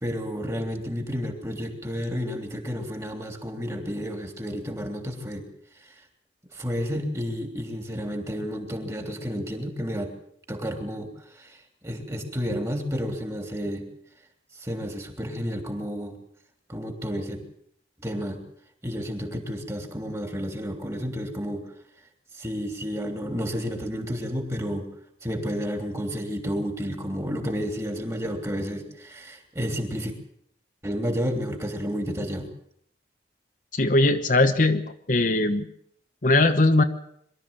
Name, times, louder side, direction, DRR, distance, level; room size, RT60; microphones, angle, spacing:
voice 1, 0.0-5.5 5.8-5.9 6.5-10.1 10.5-13.9 14.6-16.2 16.7-17.4 18.0-18.4 18.8-21.7 22.3-24.9 25.2-30.1 30.8-32.5, equal, 15° right, 5 dB, 3.2 m, -31 dB
voice 2, 33.7-34.8 35.1-35.7 36.2-36.8, left 2 dB, 50° left, 7 dB, 1.1 m, -20 dB
23.5 x 13.0 x 8.9 m, 0.70 s
head